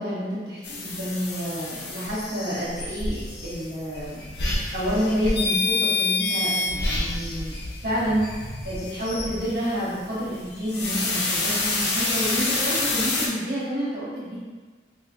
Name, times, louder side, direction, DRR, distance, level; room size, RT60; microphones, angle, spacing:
voice 1, 0.0-4.2 4.7-7.5 7.8-8.3 8.6-14.4, equal, 65° right, -10 dB, 1.2 m, -29 dB
sound 1, 0.6-13.3, left 3 dB, 70° left, 0.6 m, -28 dB
3.0 x 2.3 x 3.5 m, 1.4 s
head